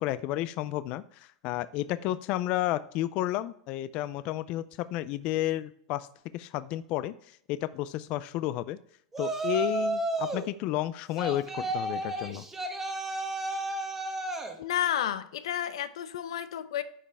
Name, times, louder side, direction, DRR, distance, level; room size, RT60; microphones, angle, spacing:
voice 1, 0.0-6.1 6.3-7.1 7.5-8.8 9.2-12.5, left 14 dB, 40° left, 15 dB, 0.3 m, -31 dB
Yell, 9.1-10.5 11.2-14.5, right 2 dB, 10° right, 1.1 m, -32 dB
voice 2, 14.6-16.8, left 10 dB, 80° left, 13 dB, 0.7 m, -31 dB
9.6 x 5.2 x 3.4 m, 0.65 s
supercardioid pair, 155°, 3 cm